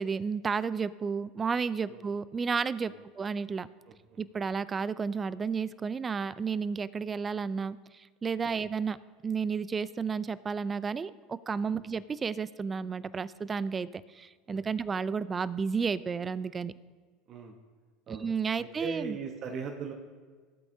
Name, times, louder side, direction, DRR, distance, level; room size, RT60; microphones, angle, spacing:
voice 1, 0.0-3.7 4.2-9.0 9.2-16.7 18.1-19.2, right 5 dB, 25° right, 17 dB, 0.4 m, -32 dB
voice 2, 18.6-19.9, right 5 dB, 45° right, 3 dB, 1.0 m, -39 dB
16.0 x 8.3 x 2.7 m, 1.5 s
hypercardioid pair, 95°, 0 cm